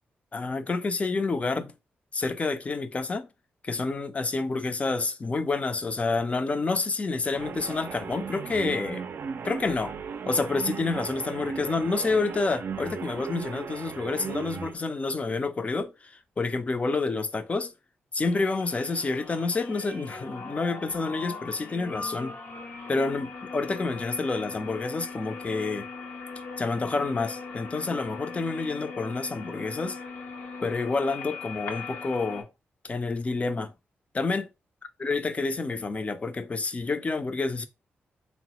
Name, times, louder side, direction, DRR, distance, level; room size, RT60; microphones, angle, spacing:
voice 1, 0.3-1.7 2.1-3.3 3.6-9.0 9.4-10.0 10.3-17.7 18.1-22.4 22.9-25.9 26.6-30.0 30.6-32.5 32.8-33.7 34.1-34.5 35.0-37.7, left 3 dB, 35° left, 0.4 m, -28 dB
sound 1, 7.3-14.7, right 6 dB, 60° right, 0.4 m, -37 dB
sound 2, 18.2-32.4, left 4 dB, 70° left, 0.7 m, -40 dB
3.5 x 2.0 x 2.8 m
cardioid pair, 75°, 4 cm